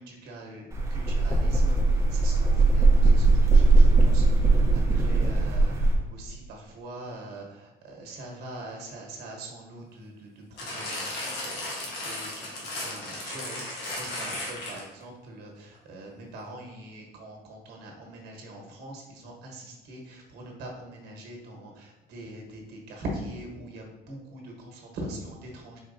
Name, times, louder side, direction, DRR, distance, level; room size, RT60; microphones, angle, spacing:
voice 1, 0.0-25.8, right 1 dB, 75° right, 0 dB, 1.2 m, -42 dB
sound 1, 0.7-6.0, right 3 dB, 15° right, 0.7 m, -20 dB
sound 2, 10.6-15.0 15.7-15.8, left 1 dB, 85° left, 1.2 m, -35 dB
4.5 x 4.0 x 2.6 m, 1.1 s
cardioid pair, 110°, 17 cm